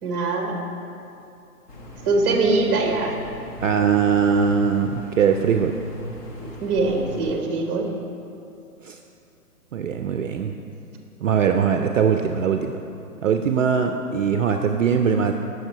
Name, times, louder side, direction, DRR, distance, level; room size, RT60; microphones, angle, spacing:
voice 1, 0.0-0.5 2.0-3.1 6.4-7.9, right 3 dB, 20° right, 2 dB, 0.9 m, -22 dB
sound 1, 1.7-7.4, equal, 30° left, 0.8 m, -37 dB
voice 2, 3.6-5.8 8.8-9.0 9.7-10.5 11.2-12.8 13.2-15.3, right 7 dB, 55° right, 6 dB, 0.5 m, -21 dB
8.9 x 6.4 x 4.5 m, 2.7 s
hypercardioid pair, 140°, 47 cm